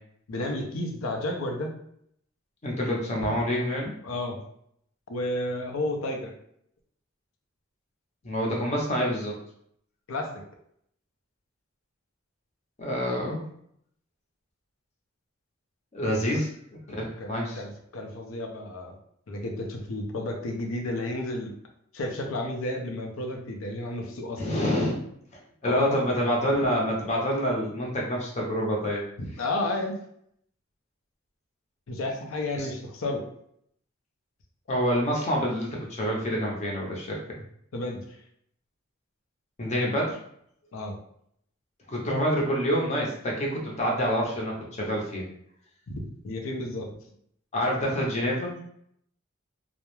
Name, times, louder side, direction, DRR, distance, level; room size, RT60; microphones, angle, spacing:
voice 1, 0.3-1.7 4.0-4.4 5.1-6.3 10.1-10.3 16.3-16.4 17.2-19.0 19.3-21.5 21.9-24.4 25.6-26.0 29.2-29.9 31.9-33.3 37.7-38.2 40.7-41.0 45.9-46.9, left 1 dB, 85° left, 3 dB, 0.5 m, -32 dB
voice 2, 2.6-3.9 8.2-9.3 12.8-13.4 15.9-16.5 16.9-17.6 24.4-24.9 25.6-29.0 32.6-32.7 34.7-37.2 39.6-40.2 41.9-45.2 47.5-48.6, equal, 35° left, -2 dB, 0.6 m, -27 dB
2.3 x 2.0 x 3.0 m, 0.69 s
head